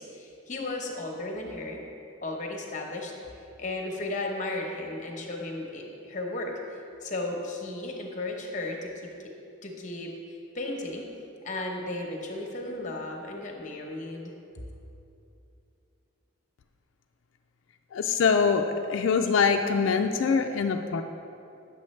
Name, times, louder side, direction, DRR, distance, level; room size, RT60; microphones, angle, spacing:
voice 1, 0.0-1.8 2.2-3.1 3.6-6.5 7.0-8.9 9.2-9.3 9.6-10.1 10.5-11.1 11.4-14.3, left 2 dB, 40° left, 1 dB, 0.9 m, -34 dB
voice 2, 17.9-21.0, left 5 dB, 70° left, 5 dB, 0.3 m, -24 dB
9.7 x 6.8 x 3.2 m, 2.7 s
head